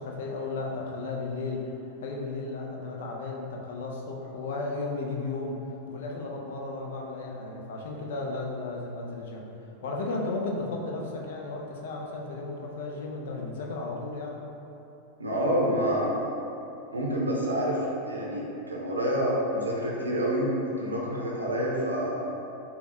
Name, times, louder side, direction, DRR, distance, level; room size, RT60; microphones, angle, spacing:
voice 1, 0.0-1.7 2.0-9.5 9.8-14.4, left 3 dB, 55° left, 0 dB, 0.5 m, -34 dB
voice 2, 15.2-16.3 16.9-22.3, equal, 80° right, -4 dB, 0.6 m, -28 dB
3.9 x 2.3 x 3.4 m, 2.9 s
figure-of-eight pair, 90°, 0 cm